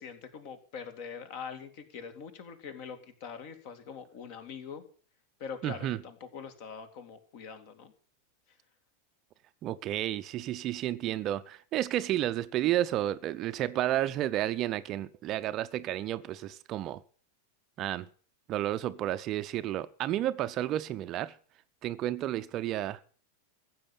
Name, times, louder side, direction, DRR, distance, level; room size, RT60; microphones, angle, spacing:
voice 1, 0.0-4.9 5.4-7.9 8.5-8.6, left 6 dB, 45° left, 2.4 m, -43 dB
voice 2, 5.6-6.0 9.6-17.0 17.8-18.1 18.5-21.3 21.8-23.0, right 13 dB, 35° right, 0.6 m, -31 dB
15.5 x 7.5 x 8.8 m
figure-of-eight pair, 90°, 0 cm